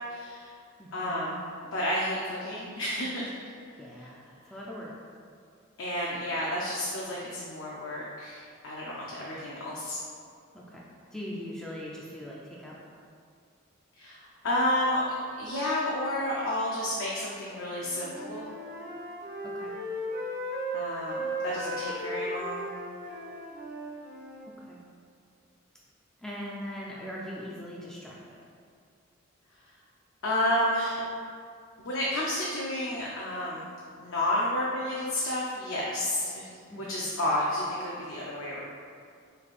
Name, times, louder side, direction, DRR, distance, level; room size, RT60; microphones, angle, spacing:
voice 1, 0.1-0.5 0.9-1.4 1.7-3.3 5.8-10.0 14.0-15.0 15.4-18.5 20.7-22.7 30.2-31.0 31.8-33.7 34.0-36.5 36.8-38.6, left 1 dB, 65° left, -5 dB, 0.5 m, -31 dB
voice 2, 0.8-1.3 3.8-4.9 10.5-10.9 11.1-12.8 19.4-19.7 24.5-24.8 26.2-28.4 36.7-37.3, equal, 5° left, -5 dB, 0.3 m, -41 dB
Wind instrument woodwind instrument, 17.7-24.5, equal, 50° right, 0.6 m, -36 dB
3.2 x 2.6 x 4.0 m, 2.3 s
head